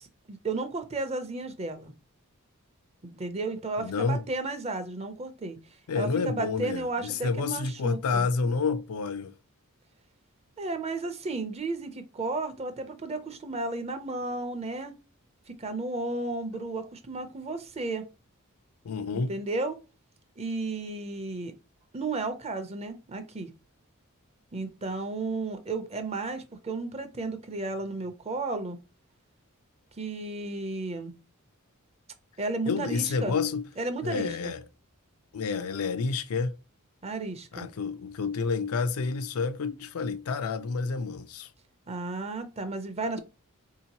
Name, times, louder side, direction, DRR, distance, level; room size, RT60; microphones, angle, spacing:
voice 1, 0.0-1.9 3.0-5.6 5.9-8.3 10.6-14.9 15.5-18.0 19.1-19.8 20.4-21.5 21.9-23.5 24.5-28.8 30.0-31.1 32.4-33.4 33.8-34.5 37.0-37.7 41.9-43.2, right 3 dB, 30° right, 0.6 m, -33 dB
voice 2, 3.8-4.2 5.9-9.3 18.8-19.3 32.7-33.6 34.0-34.6 35.3-36.6 37.5-41.5, left 4 dB, 85° left, 0.4 m, -29 dB
4.3 x 2.8 x 2.8 m
head